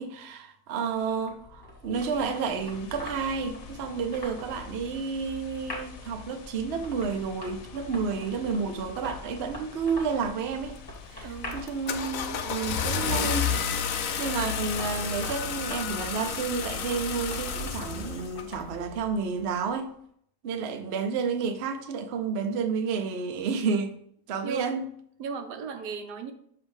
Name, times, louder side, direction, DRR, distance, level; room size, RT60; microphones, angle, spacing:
voice 1, 0.0-10.7 11.1-13.5 14.2-19.9 20.4-23.9 24.3-24.8, right 5 dB, 60° right, 0.7 m, -31 dB
sound 1, 0.9-19.9, left 2 dB, 15° left, 1.3 m, -44 dB
sound 2, 1.9-14.0, left 6 dB, 85° left, 1.3 m, -51 dB
Car / Engine starting, 10.7-11.1 11.5-18.5, left 7 dB, 65° left, 0.9 m, -31 dB
voice 2, 11.2-11.6 24.4-24.8 25.2-26.3, right 5 dB, 80° right, 1.3 m, -36 dB
6.5 x 2.8 x 5.3 m
omnidirectional pair, 1.7 m